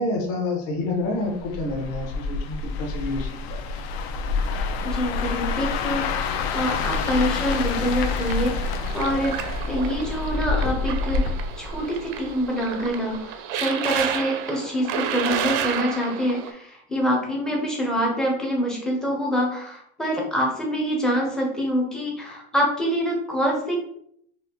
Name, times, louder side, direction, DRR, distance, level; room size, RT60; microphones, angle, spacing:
voice 1, 0.0-3.6, left 2 dB, 45° left, 0 dB, 0.9 m, -28 dB
sound 1, 1.4-12.5 12.8-13.1, left 4 dB, 80° left, 0.5 m, -27 dB
voice 2, 4.8-11.2 11.6-23.8, equal, ahead, -2 dB, 0.4 m, -26 dB
sound 2, 6.8-16.5, right 8 dB, 55° right, 0.4 m, -32 dB
4.1 x 2.1 x 2.7 m, 0.68 s
supercardioid pair, 165°, 31 cm